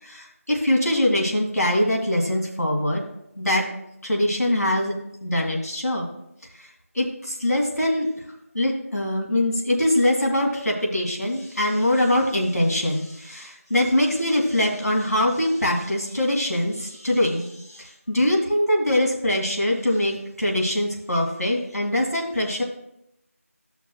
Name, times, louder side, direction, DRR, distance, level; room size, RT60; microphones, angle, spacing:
voice 1, 0.0-3.0 3.4-3.6 4.0-4.9 5.2-6.1 6.6-6.7 6.9-8.1 8.5-22.6, left 1 dB, 85° left, 0 dB, 2.2 m, -23 dB
13.0 x 5.9 x 2.3 m, 0.82 s
figure-of-eight pair, 180°, 8 cm